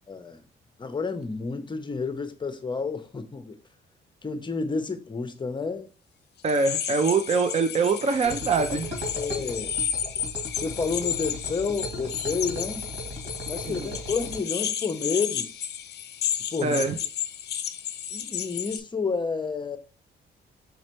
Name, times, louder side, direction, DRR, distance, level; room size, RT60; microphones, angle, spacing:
voice 1, 0.1-0.4 0.8-3.6 4.2-5.9 9.1-9.7 10.6-12.8 13.5-15.6 16.5-16.8 18.1-19.8, left 4 dB, 25° left, 0.7 m, -30 dB
voice 2, 6.4-8.9 13.7-13.9 16.6-17.0, right 4 dB, 35° right, 0.6 m, -24 dB
sound 1, 6.5-18.8, left 9 dB, 55° left, 0.5 m, -32 dB
sound 2, 8.2-14.4, equal, 55° right, 2.3 m, -37 dB
5.2 x 3.2 x 3.0 m
cardioid pair, 90°, 20 cm